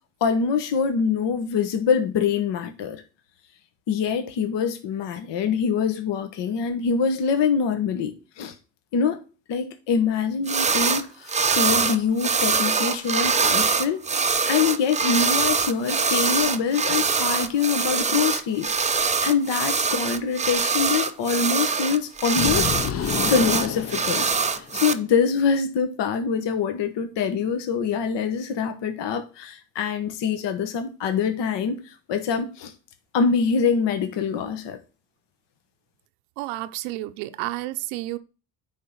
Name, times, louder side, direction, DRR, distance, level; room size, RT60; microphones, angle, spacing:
voice 1, 0.2-3.0 3.9-8.5 8.9-9.2 9.5-14.0 14.5-32.7 33.1-34.8, left 6 dB, 55° left, 1.2 m, -25 dB
sound 1, 10.5-11.0 11.3-24.9, right 5 dB, 15° right, 0.6 m, -23 dB
sound 2, 22.3-24.8, left 8 dB, 30° left, 0.6 m, -29 dB
voice 2, 36.4-38.2, right 17 dB, 80° right, 0.7 m, -31 dB
9.4 x 3.7 x 5.8 m
supercardioid pair, 90°, 50 cm